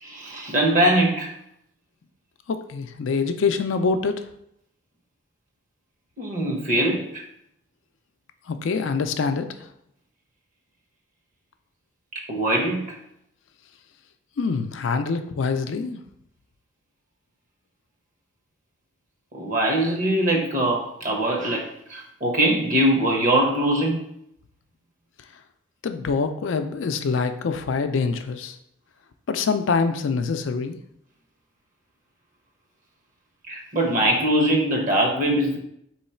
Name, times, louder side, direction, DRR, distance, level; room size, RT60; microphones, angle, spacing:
voice 1, 0.0-1.3 6.2-7.2 12.1-12.8 19.3-24.0 33.5-35.6, right 1 dB, 40° right, 0 dB, 0.9 m, -22 dB
voice 2, 2.5-4.2 8.5-9.6 14.4-16.0 25.8-28.6 29.3-30.8, left 4 dB, 80° left, 8 dB, 0.4 m, -25 dB
3.9 x 3.1 x 4.3 m, 0.74 s
head